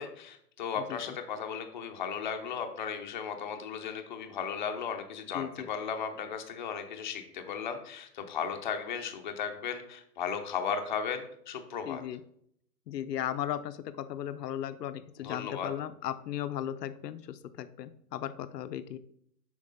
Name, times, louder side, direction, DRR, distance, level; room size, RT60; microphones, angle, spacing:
voice 1, 0.0-12.0 15.2-15.7, left 7 dB, 30° left, 5 dB, 0.5 m, -36 dB
voice 2, 0.8-1.2 5.3-5.7 11.9-12.2 12.9-19.0, left 11 dB, 75° left, 12 dB, 0.6 m, -36 dB
7.3 x 4.7 x 3.9 m, 0.68 s
hypercardioid pair, 155°, 49 cm